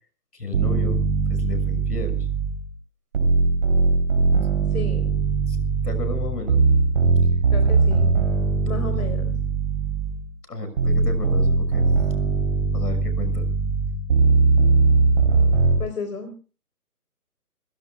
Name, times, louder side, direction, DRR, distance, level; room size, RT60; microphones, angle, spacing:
voice 1, 0.3-2.3 4.4-4.5 5.5-6.6 8.9-9.1 10.5-11.9 12.7-13.7, left 2 dB, 85° left, 9 dB, 6.3 m, -33 dB
sound 1, 0.5-2.7 3.1-10.3 10.8-15.8, right 4 dB, 35° right, 3.6 m, -20 dB
voice 2, 4.7-5.1 7.5-8.1 8.6-9.3 15.8-16.4, left 4 dB, 65° left, 6 dB, 4.0 m, -33 dB
27.5 x 16.5 x 2.3 m, 0.35 s
hypercardioid pair, 160°, 47 cm